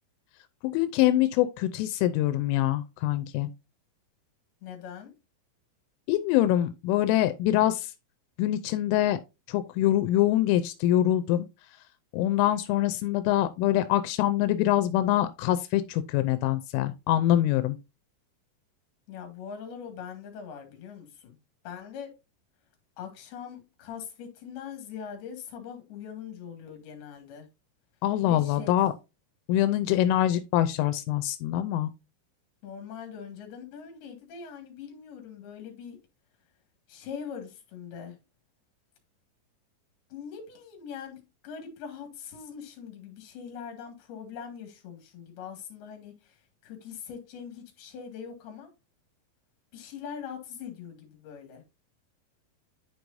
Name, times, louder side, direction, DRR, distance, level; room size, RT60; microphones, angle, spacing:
voice 1, 0.6-3.5 6.1-7.8 8.4-9.2 9.5-11.5 12.1-17.8 28.0-28.9 29.5-31.9, left 13 dB, 90° left, 3.1 m, -24 dB
voice 2, 4.6-5.1 19.1-21.4 21.6-22.1 23.0-27.5 28.3-28.8 32.6-36.0 36.9-38.2 40.1-48.7 49.7-51.6, left 7 dB, 60° left, 3.5 m, -42 dB
10.0 x 4.7 x 2.6 m
omnidirectional pair, 5.5 m